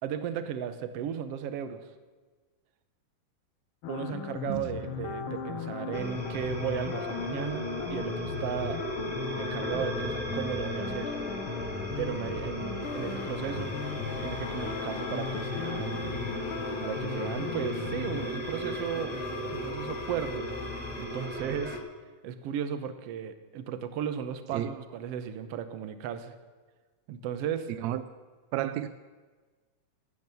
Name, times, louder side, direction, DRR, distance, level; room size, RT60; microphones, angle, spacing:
voice 1, 0.0-1.9 3.9-8.8 9.4-11.2 12.0-13.7 14.2-16.2 16.8-19.2 19.5-20.5 21.0-21.8 22.2-26.3 27.1-27.7, right 8 dB, 65° right, 11 dB, 1.6 m, -35 dB
sound 1, 3.8-18.3, left 7 dB, 85° left, 1.1 m, -37 dB
sound 2, 5.9-21.8, right 1 dB, 5° right, 0.9 m, -36 dB
sound 3, 12.8-21.3, left 9 dB, 65° left, 1.7 m, -43 dB
voice 2, 27.7-28.0 28.5-28.9, right 13 dB, 85° right, 13 dB, 1.5 m, -31 dB
15.0 x 12.0 x 7.0 m, 1.4 s
omnidirectional pair, 3.8 m